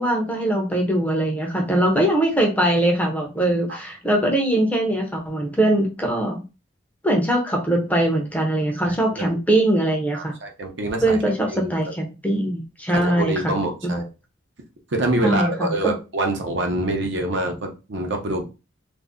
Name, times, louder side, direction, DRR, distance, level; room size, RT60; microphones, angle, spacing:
voice 1, 0.0-6.4 7.0-10.3 11.0-13.5 13.8-14.0 15.2-15.9, right 1 dB, 10° left, 1 dB, 0.5 m, -21 dB
voice 2, 10.1-11.2 11.5-11.7 12.9-14.1 14.9-18.4, right 1 dB, 60° right, 3 dB, 0.6 m, -25 dB
2.5 x 2.0 x 3.5 m, 0.30 s
head